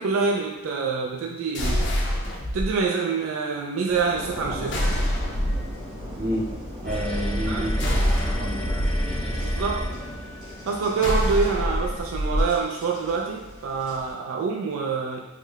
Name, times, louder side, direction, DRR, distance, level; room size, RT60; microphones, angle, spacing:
voice 1, 0.0-1.9 2.5-4.8 7.5-7.7 9.4-9.9 10.7-15.2, right 5 dB, 85° right, 0 dB, 0.3 m, -26 dB
sound 1, 1.5-2.7 4.7-5.7 7.8-8.9 11.0-12.5, equal, 60° left, 0.6 m, -25 dB
sound 2, 3.9-14.1, equal, 70° right, 1.5 m, -37 dB
voice 2, 6.2-6.5 6.8-8.6, equal, 50° right, -2 dB, 0.6 m, -30 dB
sound 3, 6.8-10.4, equal, 5° left, 0.3 m, -29 dB
3.6 x 2.1 x 3.4 m, 1.2 s
head